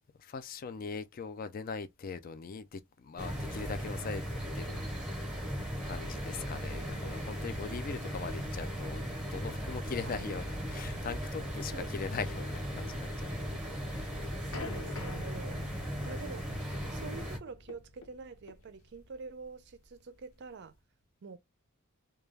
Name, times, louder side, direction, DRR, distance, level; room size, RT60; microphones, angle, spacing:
voice 1, 0.2-4.2 4.5-4.9 5.3-5.6 5.8-13.6 13.9-14.1, left 5 dB, 40° left, 0.3 m, -41 dB
sound 1, 3.2-17.4, equal, 5° right, 0.8 m, -37 dB
voice 2, 6.7-7.3 7.9-8.2 10.0-10.3 11.7-12.0 14.4-20.7 21.2-21.4, right 4 dB, 55° right, 0.4 m, -47 dB
sound 2, 14.3-20.7, left 4 dB, 70° left, 0.7 m, -48 dB
2.3 x 2.2 x 3.2 m
head